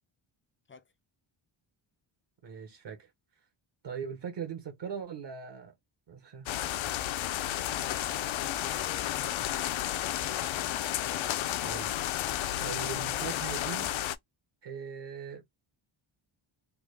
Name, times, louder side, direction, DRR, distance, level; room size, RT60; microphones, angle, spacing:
voice 1, 2.4-3.1 3.8-5.7 6.1-6.5 11.5-11.9 12.6-13.9 14.6-15.4, right 7 dB, 55° right, 1.1 m, -40 dB
sound 1, 6.5-14.2, left 12 dB, 70° left, 0.5 m, -32 dB
voice 2, 7.5-10.3, left 6 dB, 25° left, 0.5 m, -50 dB
3.7 x 2.2 x 3.2 m
wide cardioid pair, 130°, 49 cm